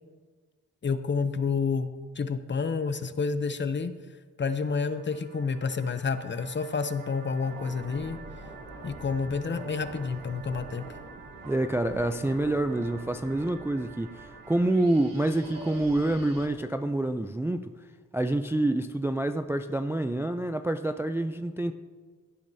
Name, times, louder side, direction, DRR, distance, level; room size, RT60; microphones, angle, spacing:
voice 1, 0.8-1.9 2.2-3.9 4.4-8.2 8.8-10.8, left 5 dB, 35° left, 10 dB, 0.6 m, -29 dB
sound 1, 4.5-16.5, right 3 dB, 85° right, 1.5 m, -45 dB
voice 2, 11.4-17.7 18.1-21.7, right 1 dB, 10° right, 8 dB, 0.3 m, -27 dB
16.0 x 8.6 x 2.7 m, 1.5 s
cardioid pair, 80°, 33 cm